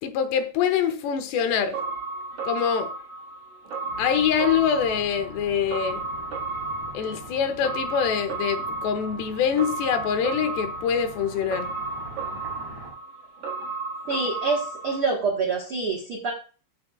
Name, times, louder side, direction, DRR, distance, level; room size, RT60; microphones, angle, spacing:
voice 1, 0.0-1.8 2.4-2.9 4.0-6.1 6.9-11.7, left 7 dB, 85° left, 3.1 m, -24 dB
sound 1, 1.7-15.0, right 3 dB, 55° right, 2.6 m, -33 dB
sound 2, 3.9-12.9, right 2 dB, 40° right, 4.2 m, -44 dB
voice 2, 14.1-16.3, right 4 dB, 80° right, 1.2 m, -26 dB
14.5 x 6.0 x 2.3 m
omnidirectional pair, 4.9 m